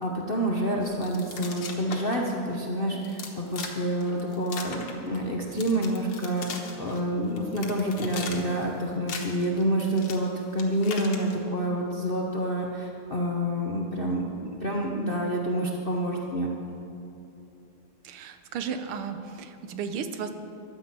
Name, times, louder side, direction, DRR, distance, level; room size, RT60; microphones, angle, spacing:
voice 1, 0.0-16.5, right 1 dB, 45° left, -2 dB, 0.7 m, -28 dB
sound 1, 0.8-2.2 2.5-2.6 3.0-3.8 4.0-5.3 5.6-7.0 7.4-8.6 8.9-11.4, left 5 dB, 80° left, 2.1 m, -38 dB
voice 2, 18.0-20.3, right 6 dB, 85° right, 8 dB, 1.7 m, -34 dB
11.5 x 9.7 x 7.5 m, 2.9 s
omnidirectional pair, 2.3 m